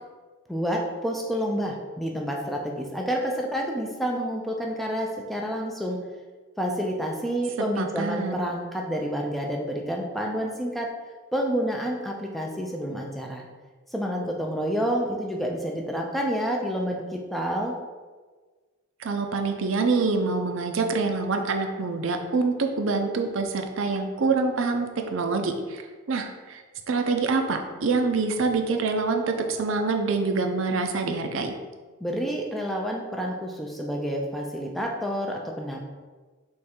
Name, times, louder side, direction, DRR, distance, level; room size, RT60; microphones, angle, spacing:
voice 1, 0.5-6.0 6.6-10.9 11.3-13.4 13.9-17.8 32.0-35.8, equal, ahead, 0 dB, 0.4 m, -29 dB
voice 2, 7.8-8.4 19.0-31.6, right 4 dB, 65° right, 4 dB, 0.5 m, -26 dB
3.6 x 3.1 x 4.3 m, 1.4 s
head